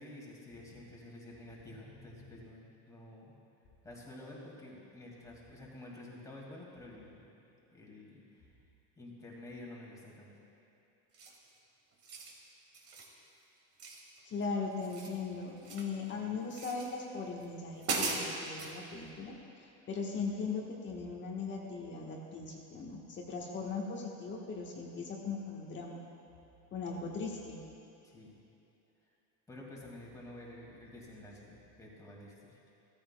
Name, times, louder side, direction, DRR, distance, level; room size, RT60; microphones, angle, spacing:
voice 1, 0.0-3.3 3.8-7.4 7.7-8.5 9.0-10.3 28.0-28.4 29.5-32.6, left 1 dB, 10° left, -3 dB, 2.0 m, -50 dB
sound 1, 11.1-11.5 11.9-12.4 12.7-13.1 13.8-14.4 14.7-15.9 16.5-16.9 17.4-17.5 17.8-18.7, right 3 dB, 40° right, 1.8 m, -38 dB
voice 2, 14.2-19.3 19.9-26.0 26.7-27.6, left 4 dB, 30° left, -1 dB, 1.2 m, -39 dB
16.5 x 14.0 x 2.2 m, 2.8 s
cardioid pair, 150°, 37 cm